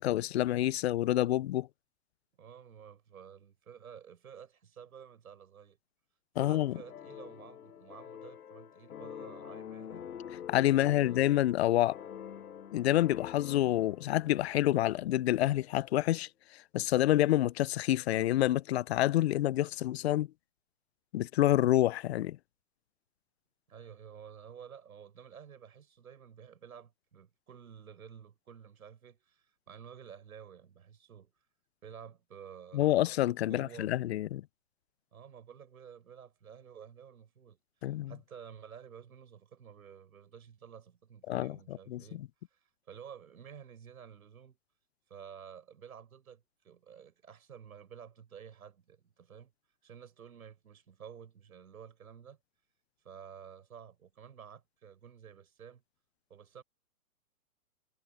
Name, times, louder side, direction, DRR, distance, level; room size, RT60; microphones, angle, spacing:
voice 1, 0.0-1.7 6.4-6.8 10.5-12.0 12.7-20.3 21.1-22.4 32.7-34.4 37.8-38.1 41.3-42.3, left 14 dB, 50° left, 0.6 m, -28 dB
voice 2, 2.4-5.8 6.4-10.1 10.7-11.2 23.7-31.3 31.8-33.9 35.1-42.2 42.5-44.6 45.1-49.5 49.8-52.4 53.0-55.8 56.3-56.6, right 8 dB, 75° right, 7.9 m, -52 dB
sound 1, 6.4-15.4, left 9 dB, 85° left, 1.0 m, -46 dB
hypercardioid pair, 140°, 43 cm